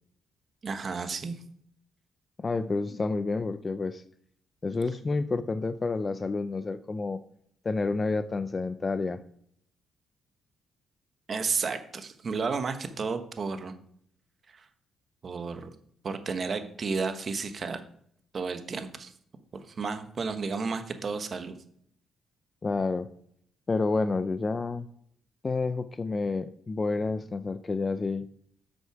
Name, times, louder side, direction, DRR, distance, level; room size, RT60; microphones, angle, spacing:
voice 1, 0.6-1.4 11.3-13.7 14.5-14.6 15.2-15.7 16.0-17.8 18.3-19.1 19.7-21.6, right 4 dB, 45° right, 8 dB, 1.2 m, -32 dB
voice 2, 2.4-4.0 4.6-7.2 7.6-9.2 22.6-23.1 23.7-24.9 25.4-28.3, left 3 dB, 30° left, 11 dB, 0.5 m, -29 dB
9.7 x 6.5 x 4.7 m, 0.65 s
cardioid pair, 90°, 0 cm